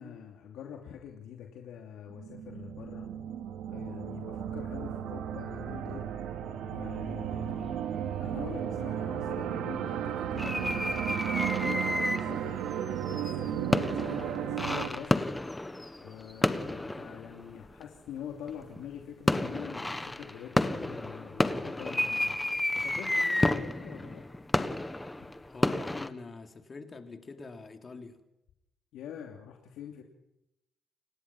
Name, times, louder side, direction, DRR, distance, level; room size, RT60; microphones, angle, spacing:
voice 1, 0.0-3.1 3.7-6.1 6.6-7.7 8.0-11.0 11.5-12.6 13.1-15.2 16.0-22.4 22.7-24.2 28.9-30.0, left 9 dB, 85° left, 2 dB, 2.8 m, -45 dB
sound 1, 2.1-14.9, right 9 dB, 85° right, 2.8 m, -34 dB
voice 2, 7.5-7.8 13.9-14.3 25.5-28.2, left 3 dB, 35° left, 6 dB, 3.3 m, -45 dB
sound 2, 10.4-12.4 12.9-17.8 18.5-18.9 19.3-26.1, left 1 dB, 10° left, 1.5 m, -31 dB
29.5 x 18.0 x 6.0 m, 0.84 s
cardioid pair, 90°, 0 cm